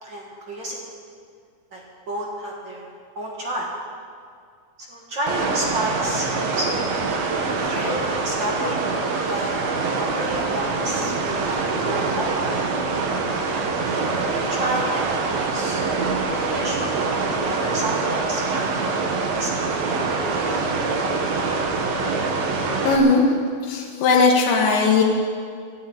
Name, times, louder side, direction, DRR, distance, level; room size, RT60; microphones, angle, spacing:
voice 1, 0.0-0.8 1.7-2.9 3.1-3.7 4.8-7.3 7.6-8.9 9.2-9.6 10.0-12.3 13.9-15.8 16.3-19.1 19.4-20.7, right 1 dB, 45° right, -2 dB, 1.6 m, -31 dB
sound 1, 5.3-23.0, right 4 dB, 85° right, 1.4 m, -24 dB
voice 2, 22.9-23.4 23.6-25.0, left 4 dB, 85° left, -2 dB, 3.5 m, -18 dB
12.5 x 12.0 x 8.9 m, 2.2 s
omnidirectional pair, 4.9 m